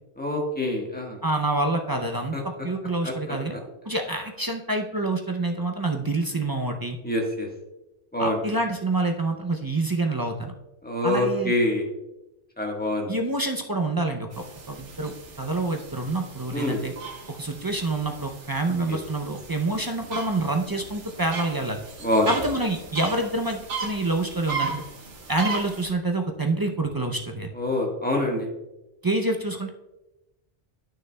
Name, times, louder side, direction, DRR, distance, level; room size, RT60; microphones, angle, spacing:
voice 1, 0.2-1.2 2.3-2.4 3.0-3.1 3.5-3.6 7.0-7.5 8.1-8.4 10.8-11.8 12.6-13.1 16.5-16.8 18.9-19.0 22.0-22.3 27.6-28.5, left 1 dB, 10° left, 0 dB, 1.3 m, -25 dB
voice 2, 1.2-3.5 3.9-7.0 8.2-10.5 11.0-11.5 13.1-16.9 17.3-21.8 22.3-24.8 25.3-27.5 29.0-29.7, right 2 dB, 35° right, 3 dB, 0.4 m, -27 dB
sound 1, 14.3-25.9, right 5 dB, 85° right, 1.4 m, -37 dB
11.5 x 6.4 x 2.2 m, 0.97 s
omnidirectional pair, 1.2 m